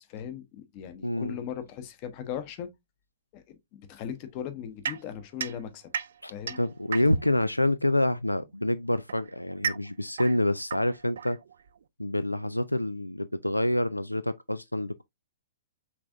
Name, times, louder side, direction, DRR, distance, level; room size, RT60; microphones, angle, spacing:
voice 1, 0.0-2.7 3.3-5.9 6.3-6.6, left 9 dB, 35° left, 0.9 m, -38 dB
voice 2, 1.0-1.4 6.2-11.4 12.0-15.0, left 1 dB, 90° left, 0.3 m, -27 dB
sound 1, 4.8-7.4 8.5-11.8, right 7 dB, 60° right, 0.4 m, -36 dB
5.9 x 3.4 x 2.5 m
figure-of-eight pair, 110°, 0 cm